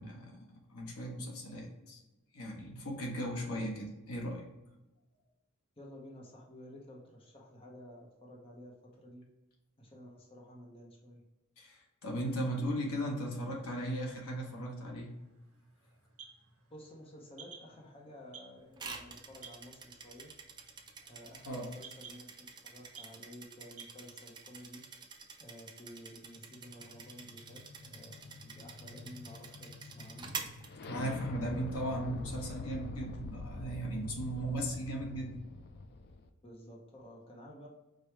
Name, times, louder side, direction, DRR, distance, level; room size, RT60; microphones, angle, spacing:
voice 1, 0.0-2.0 2.3-4.5 11.6-15.1 21.4-21.7 30.8-35.4, right 1 dB, 75° left, -1 dB, 1.1 m, -37 dB
voice 2, 5.8-9.2 9.8-11.2 16.7-20.3 21.1-24.8 25.4-30.4 31.3-31.8 32.1-32.3 36.4-37.7, equal, 25° left, -2 dB, 0.8 m, -52 dB
sound 1, 14.0-24.0, right 5 dB, 75° right, 1.0 m, -57 dB
sound 2, 18.8-31.4, right 5 dB, 20° right, 0.4 m, -48 dB
sound 3, 26.1-36.3, left 3 dB, 50° left, 0.4 m, -46 dB
4.9 x 2.2 x 4.4 m, 1.0 s
head